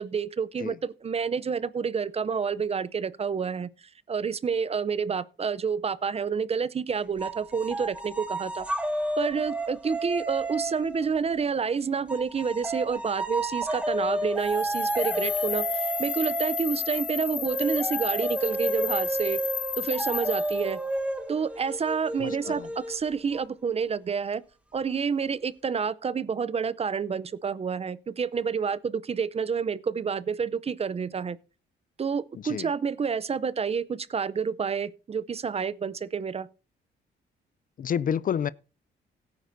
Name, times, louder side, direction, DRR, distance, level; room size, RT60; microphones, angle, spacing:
voice 1, 0.0-3.7 4.1-8.7 9.2-19.4 19.8-20.8 21.3-24.4 24.7-31.4 32.0-36.5, right 6 dB, 30° right, 0.5 m, -29 dB
sound 1, 7.2-11.6 12.1-23.4, right 1 dB, 5° right, 1.6 m, -31 dB
sound 2, 14.4-20.7, left 10 dB, 65° left, 2.4 m, -33 dB
voice 2, 22.2-22.7 32.4-32.7 37.8-38.5, left 8 dB, 45° left, 0.4 m, -29 dB
17.0 x 9.4 x 2.6 m
cardioid pair, 90°, 20 cm